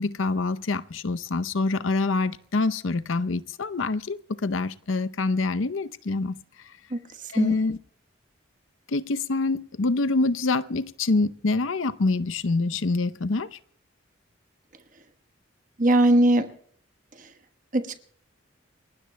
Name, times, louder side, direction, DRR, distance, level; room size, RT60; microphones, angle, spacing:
voice 1, 0.0-6.4 7.3-7.8 8.9-13.6, left 3 dB, 80° left, 0.7 m, -26 dB
voice 2, 15.8-16.5 17.7-18.0, right 1 dB, 40° right, 1.2 m, -20 dB
29.5 x 22.0 x 2.2 m
head